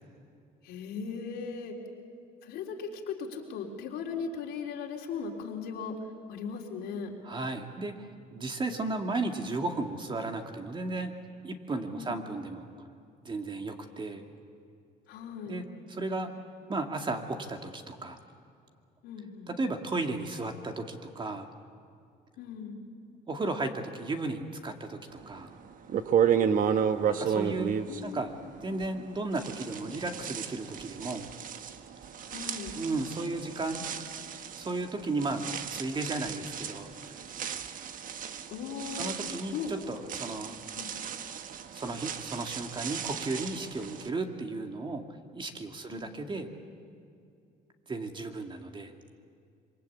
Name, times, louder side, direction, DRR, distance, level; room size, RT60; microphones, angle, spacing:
voice 1, 0.6-1.8 2.4-5.9 6.3-7.1 11.9-12.4 15.1-15.6 19.0-19.5 22.4-22.8 27.8-28.5 32.3-32.7 38.5-39.1 39.5-39.7 40.7-40.9 45.9-46.1, left 6 dB, 80° left, 0 dB, 3.7 m, -38 dB
voice 2, 7.2-8.0 8.3-11.1 11.4-12.9 13.2-14.2 15.5-16.3 16.7-18.2 19.5-21.5 23.3-25.5 27.1-27.7 28.0-28.3 28.6-31.3 32.8-33.9 34.5-37.2 39.0-40.6 41.7-45.0 45.3-46.5 47.9-48.9, right 2 dB, 30° right, 4 dB, 2.2 m, -34 dB
sound 1, 25.4-25.5 25.9-29.0 29.3-44.1, right 8 dB, 55° right, 1.3 m, -33 dB
26.0 x 23.5 x 8.5 m, 2.4 s
cardioid pair, 110°, 17 cm